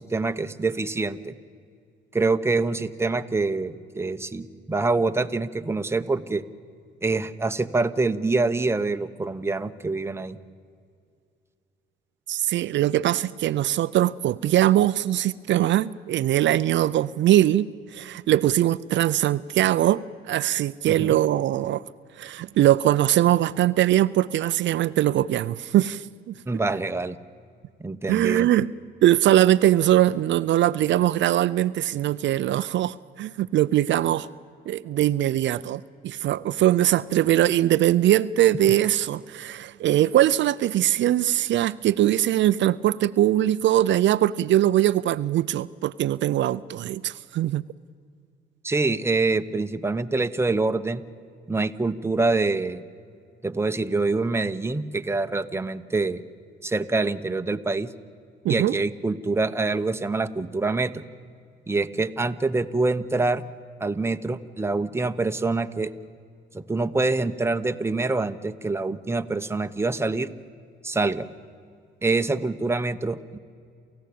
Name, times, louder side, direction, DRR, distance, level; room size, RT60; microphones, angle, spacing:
voice 1, 0.0-1.3 2.1-6.4 7.0-10.4 20.9-21.2 26.5-27.2 27.8-28.5 48.6-51.0 51.5-52.8 53.4-56.2 56.6-57.9 58.5-61.0 61.7-63.4 63.8-65.9 66.5-70.3 70.8-71.3 72.0-73.4, right 3 dB, 15° right, 8 dB, 1.0 m, -25 dB
voice 2, 12.3-21.8 22.2-26.3 28.1-28.7 29.0-34.3 34.7-47.6 58.4-58.8, right 13 dB, 70° right, 14 dB, 0.5 m, -21 dB
28.5 x 15.5 x 8.6 m, 2.3 s
cardioid pair, 90°, 20 cm